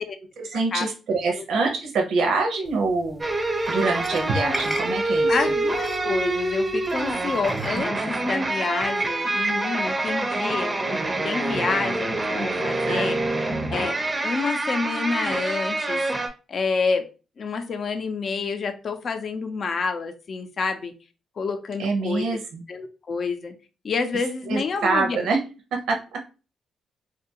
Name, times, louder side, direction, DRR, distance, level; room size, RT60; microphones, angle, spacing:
voice 1, 0.4-5.4 12.9-13.2 21.8-22.7 24.5-25.4 25.7-26.2, right 3 dB, 80° right, 2 dB, 0.6 m, -25 dB
sound 1, 2.6-7.9, left 1 dB, 15° left, 0.7 m, -40 dB
sound 2, 3.2-16.3, right 2 dB, 25° right, 0.5 m, -26 dB
voice 2, 5.3-13.2 13.7-14.0 14.2-16.1 16.5-17.1 17.4-20.9 21.4-22.3 22.7-23.5 23.8-25.2, left 4 dB, 55° left, 8 dB, 0.5 m, -28 dB
2.6 x 2.4 x 2.8 m, 0.33 s
cardioid pair, 80°, 0 cm